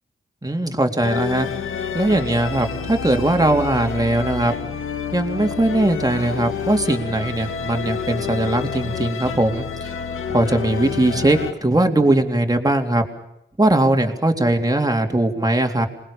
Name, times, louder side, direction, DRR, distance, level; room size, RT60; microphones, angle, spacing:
voice 1, 0.4-1.5 1.9-4.6 5.1-9.7 10.3-13.1 13.6-15.9, right 1 dB, 20° right, 4 dB, 3.7 m, -20 dB
sound 1, 1.0-11.5, left 7 dB, 85° left, 2.0 m, -29 dB
27.0 x 20.5 x 7.3 m, 0.81 s
cardioid pair, 55°, 21 cm